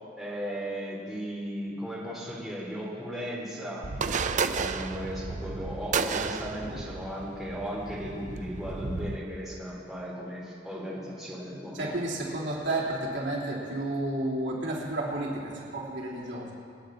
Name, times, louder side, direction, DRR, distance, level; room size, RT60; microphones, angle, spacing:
voice 1, 0.2-3.9 4.4-11.9, equal, ahead, -7 dB, 3.4 m, -36 dB
sound 1, 3.8-9.2, right 5 dB, 40° right, 0.5 m, -32 dB
voice 2, 11.7-16.5, right 1 dB, 65° right, -5 dB, 3.2 m, -31 dB
26.5 x 9.3 x 3.9 m, 2.3 s
head